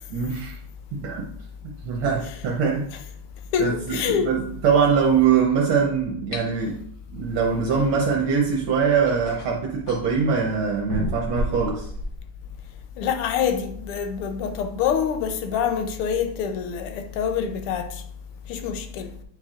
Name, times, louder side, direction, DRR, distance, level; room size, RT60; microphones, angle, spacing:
voice 1, 0.1-0.6 0.9-1.3 1.8-2.9 3.6-6.8 7.1-11.9, right 6 dB, 75° right, 1.6 m, -22 dB
voice 2, 3.5-4.3 13.0-18.0 18.5-19.1, left 7 dB, 90° left, 1.6 m, -26 dB
sound 1, 6.3-6.5 8.3-8.4 9.1-10.1 10.9-12.2, equal, 60° left, 0.7 m, -30 dB
8.8 x 4.6 x 2.4 m
omnidirectional pair, 2.4 m